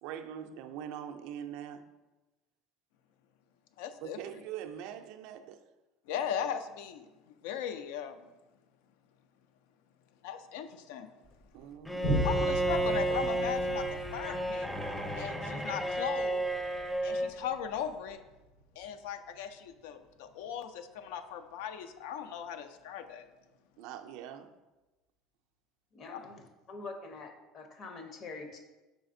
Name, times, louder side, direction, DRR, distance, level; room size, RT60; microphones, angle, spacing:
voice 1, 0.0-1.9 4.0-5.7 11.5-12.2 23.8-24.5, right 9 dB, 75° right, 0.3 m, -43 dB
voice 2, 3.8-4.2 6.1-8.3 10.2-11.1 12.2-14.7 15.2-16.5 17.0-18.2 18.8-23.3 26.1-26.2, left 8 dB, 85° left, 0.3 m, -38 dB
Bowed string instrument, 11.9-17.4, right 1 dB, 5° left, 0.4 m, -32 dB
Boom, 12.0-18.9 19.5-19.6, equal, 65° left, 1.2 m, -38 dB
voice 3, 25.9-28.6, left 3 dB, 45° left, 0.7 m, -45 dB
4.9 x 4.1 x 2.6 m
supercardioid pair, 120°, 0 cm